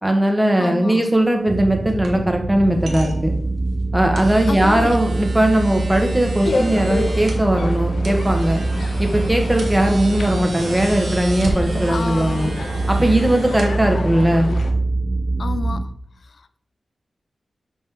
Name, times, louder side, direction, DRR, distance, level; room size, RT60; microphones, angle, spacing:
voice 1, 0.0-3.3 3.9-8.6 9.0-12.5 12.9-14.5, right 1 dB, 10° right, 3 dB, 1.2 m, -19 dB
voice 2, 0.6-1.0 4.5-5.0 11.8-12.5 15.4-15.9 16.2-16.6, left 4 dB, 60° left, 13 dB, 0.4 m, -29 dB
sound 1, 1.1-14.4, right 2 dB, 85° right, 1.5 m, -37 dB
sound 2, 1.5-15.8, right 2 dB, 30° right, 0.5 m, -24 dB
sound 3, 6.4-14.7, left 2 dB, 80° left, 1.0 m, -30 dB
6.3 x 5.6 x 4.7 m, 0.68 s
wide cardioid pair, 110°, 0 cm